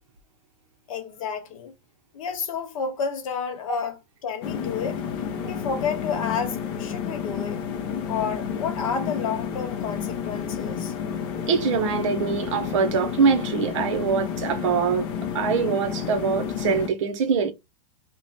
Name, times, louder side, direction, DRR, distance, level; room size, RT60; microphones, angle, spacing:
voice 1, 0.9-1.7 2.1-5.0 5.4-7.6 8.1-10.9, left 6 dB, 65° left, 1.0 m, -30 dB
sound 1, 4.4-16.9, left 7 dB, 40° left, 0.5 m, -30 dB
voice 2, 11.5-15.1 15.3-17.5, right 6 dB, 55° right, 0.7 m, -23 dB
3.0 x 2.2 x 3.9 m
supercardioid pair, 170°, 19 cm